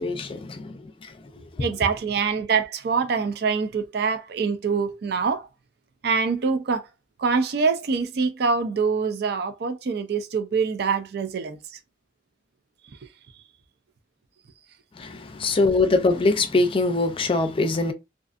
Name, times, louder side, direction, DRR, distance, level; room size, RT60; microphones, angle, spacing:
voice 1, 0.0-1.7 14.9-17.9, left 3 dB, 30° left, 0.4 m, -23 dB
voice 2, 1.6-5.4 6.0-6.8 7.2-11.6, right 5 dB, 65° right, 0.4 m, -24 dB
2.5 x 2.4 x 2.4 m
head